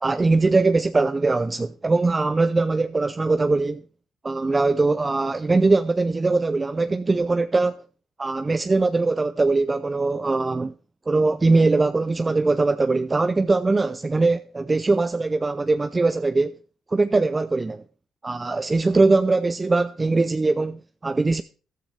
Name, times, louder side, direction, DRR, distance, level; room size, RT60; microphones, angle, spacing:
voice 1, 0.0-3.8 4.2-7.8 8.2-10.7 11.1-16.5 16.9-17.8 18.2-21.4, right 3 dB, 25° right, 0.6 m, -21 dB
13.5 x 12.0 x 3.4 m
cardioid pair, 85°, 0 cm